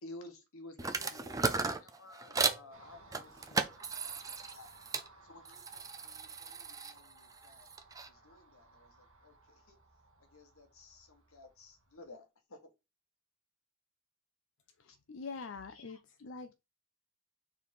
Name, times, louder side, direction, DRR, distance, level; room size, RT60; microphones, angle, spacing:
voice 1, 0.0-4.7 5.2-7.7 8.1-9.8 10.3-12.7 14.9-15.0 15.3-15.5 15.7-16.0, left 2 dB, 75° left, 1.3 m, -55 dB
sound 1, 0.8-2.6 3.1-5.1 5.4-8.1, right 4 dB, 15° right, 0.4 m, -36 dB
Car passing by, 2.7-12.1, right 2 dB, 65° right, 1.6 m, -60 dB
voice 2, 14.8-16.5, left 4 dB, 55° left, 0.5 m, -45 dB
4.6 x 4.0 x 5.2 m
head